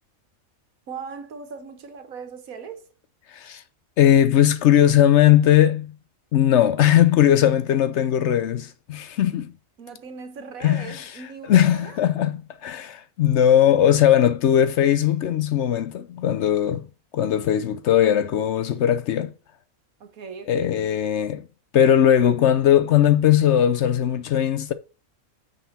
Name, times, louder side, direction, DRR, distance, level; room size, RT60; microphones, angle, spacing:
voice 1, 0.9-2.9 9.8-12.0 20.0-20.8, right 5 dB, 80° right, 1.6 m, -39 dB
voice 2, 3.3-3.6 4.0-5.9 6.3-9.5 10.6-11.0 11.5-16.8 17.1-19.3 20.5-21.4 21.7-24.7, left 10 dB, 65° left, 0.8 m, -19 dB
8.9 x 4.1 x 4.1 m
omnidirectional pair, 1.4 m